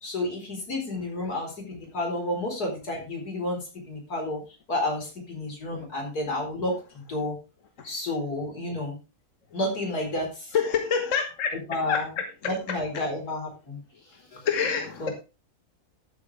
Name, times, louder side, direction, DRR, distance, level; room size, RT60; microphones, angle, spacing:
voice 1, 0.0-4.4 4.7-7.3 7.8-9.0 9.5-10.5 11.5-12.1 12.4-13.8 14.3-14.5 15.0-15.1, left 1 dB, 85° left, 1 dB, 4.7 m, -31 dB
voice 2, 10.5-11.5 11.9-12.0 14.5-15.1, left 6 dB, 55° left, 5 dB, 1.7 m, -26 dB
13.0 x 8.5 x 3.3 m, 0.29 s
omnidirectional pair, 1.6 m